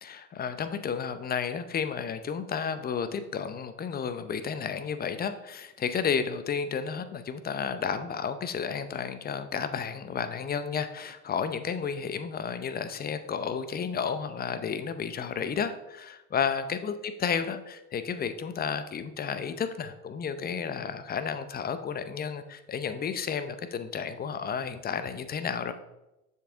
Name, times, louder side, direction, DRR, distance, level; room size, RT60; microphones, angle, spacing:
voice 1, 0.0-25.7, left 6 dB, 20° left, 11 dB, 0.6 m, -32 dB
7.3 x 6.7 x 3.5 m, 0.95 s
hypercardioid pair, 85°, 46 cm